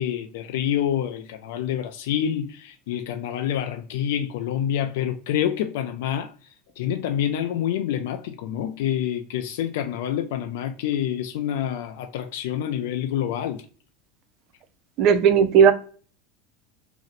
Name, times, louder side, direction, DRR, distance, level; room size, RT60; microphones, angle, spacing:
voice 1, 0.0-6.3 6.8-13.6, left 10 dB, 80° left, 0.3 m, -27 dB
voice 2, 15.0-15.7, right 7 dB, 50° right, 0.4 m, -15 dB
2.5 x 2.0 x 3.9 m
supercardioid pair, 115°, 0 cm